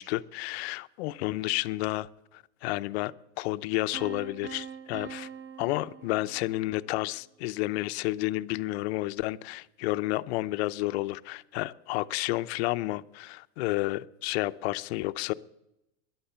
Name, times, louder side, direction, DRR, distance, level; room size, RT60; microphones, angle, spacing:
voice 1, 0.0-2.1 2.6-5.3 5.6-15.3, left 19 dB, 70° left, 14 dB, 0.6 m, -31 dB
Piano, 3.9-6.8, right 7 dB, 45° right, 1.0 m, -43 dB
13.0 x 11.0 x 6.8 m, 0.87 s
supercardioid pair, 150°, 33 cm